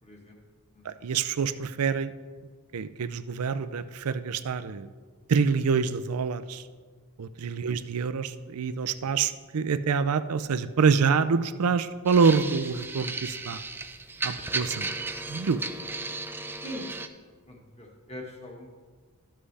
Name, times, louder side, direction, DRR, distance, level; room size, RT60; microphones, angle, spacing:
voice 1, 0.0-0.4 0.7-1.0 7.6-7.8 16.6-16.9 17.2-18.7, left 1 dB, 30° left, -1 dB, 1.6 m, -43 dB
voice 2, 0.8-2.1 2.7-4.9 5.3-6.6 7.2-13.6 14.2-14.9 15.3-15.6, right 5 dB, 85° right, 12 dB, 0.5 m, -26 dB
sound 1, 12.1-17.1, right 3 dB, 10° right, 0.4 m, -35 dB
12.5 x 7.4 x 3.4 m, 1.5 s
head